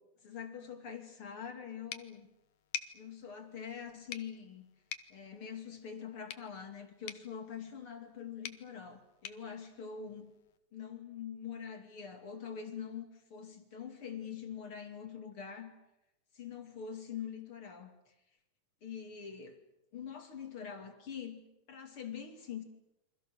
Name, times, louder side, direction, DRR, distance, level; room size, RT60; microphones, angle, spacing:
voice 1, 0.2-2.3 2.9-4.7 5.1-10.3 10.7-15.7 16.3-17.9 18.8-19.6 19.9-22.6, left 7 dB, 40° left, 5 dB, 3.1 m, -44 dB
sound 1, 1.9-10.6, left 10 dB, 70° left, 2.5 m, -49 dB
29.0 x 25.0 x 6.6 m, 0.87 s
omnidirectional pair, 3.9 m